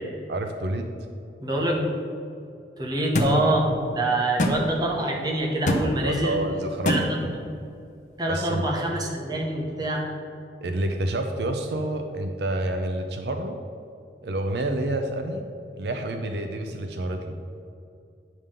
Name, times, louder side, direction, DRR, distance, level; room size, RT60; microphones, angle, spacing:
voice 1, 0.3-0.9 6.0-7.1 8.3-8.9 10.6-13.6 14.2-15.4 15.8-17.3, right 1 dB, 65° right, 5 dB, 0.5 m, -28 dB
voice 2, 1.4-1.9 2.8-6.4 6.9-7.2 8.2-10.1, right 1 dB, 20° right, -1 dB, 1.0 m, -25 dB
sound 1, 3.1-3.3 4.4-4.6 5.7-5.8 6.9-7.0, left 1 dB, 45° left, 0.8 m, -22 dB
9.3 x 3.7 x 6.6 m, 2.5 s
head